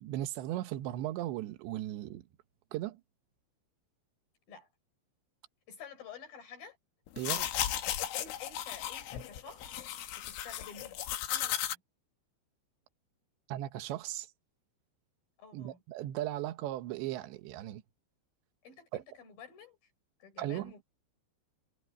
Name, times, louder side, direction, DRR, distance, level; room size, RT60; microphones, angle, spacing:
voice 1, 0.0-2.2 2.7-3.0 7.2-7.5 13.5-14.3 15.5-17.8 18.9-19.0 20.4-20.7, right 14 dB, 75° right, 3.3 m, -37 dB
voice 2, 5.7-6.8 8.1-9.9 10.2-11.0 11.3-11.8 15.4-15.8 18.6-19.8 20.2-20.8, left 6 dB, 50° left, 6.8 m, -50 dB
sound 1, 7.1-11.7, left 12 dB, 80° left, 4.1 m, -35 dB
omnidirectional pair, 5.5 m